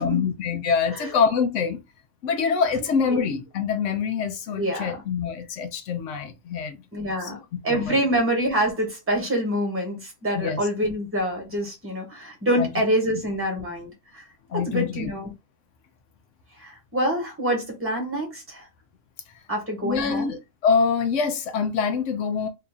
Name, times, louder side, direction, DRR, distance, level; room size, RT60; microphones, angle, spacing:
voice 1, 0.0-1.8 2.2-6.8 7.2-7.3 7.7-8.0 10.3-10.7 12.6-12.7 13.1-13.2 14.5-15.1 19.8-22.5, left 6 dB, 70° left, 1.0 m, -25 dB
voice 2, 4.6-4.9 6.9-7.4 7.6-14.2 14.5-15.3 16.6-18.7 19.5-20.3, equal, 10° right, 1.2 m, -26 dB
2.9 x 2.7 x 3.5 m
omnidirectional pair, 1.3 m